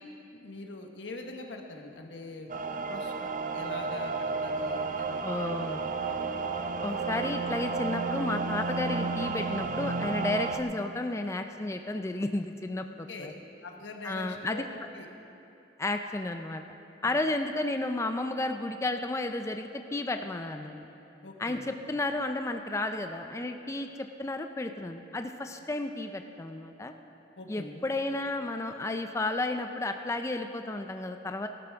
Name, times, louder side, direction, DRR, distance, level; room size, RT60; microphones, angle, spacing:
voice 1, 0.3-2.5 2.9-5.2 5.5-5.6 13.1-13.4 13.6-15.1 17.0-17.2 21.2-21.7 27.4-27.8, left 2 dB, 85° left, 3 dB, 1.2 m, -43 dB
sound 1, 2.5-10.6, right 4 dB, 45° right, 0.5 m, -32 dB
voice 2, 5.2-5.9 6.8-13.3 14.0-14.6 15.8-16.6 17.0-20.8 21.4-26.9 27.5-31.5, left 2 dB, 15° left, 6 dB, 0.4 m, -32 dB
18.0 x 12.0 x 3.5 m, 2.8 s
head